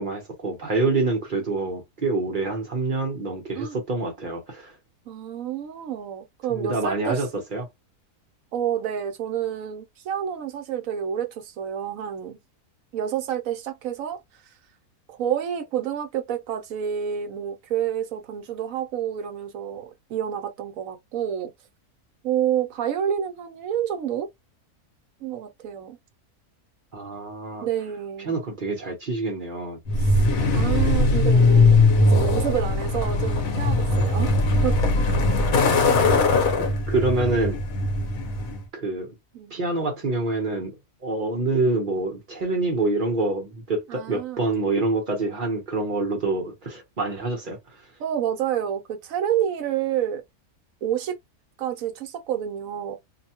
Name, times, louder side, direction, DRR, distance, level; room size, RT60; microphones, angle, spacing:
voice 1, 0.0-4.7 6.5-7.7 26.9-27.7 28.2-29.8 35.3-35.8 36.9-37.6 38.7-39.1 39.5-47.8, right 3 dB, 40° right, 0.8 m, -26 dB
voice 2, 5.1-7.2 8.5-12.4 12.9-14.2 15.1-21.5 22.2-24.3 25.2-26.0 27.6-28.4 30.0-30.2 30.5-34.3 34.6-34.8 39.3-39.6 43.9-44.5 48.0-50.2 50.8-51.2 51.6-53.0, right 9 dB, 70° right, 1.0 m, -29 dB
Truck, 29.9-38.6, left 2 dB, 70° left, 1.2 m, -20 dB
2.7 x 2.1 x 2.8 m
omnidirectional pair, 1.6 m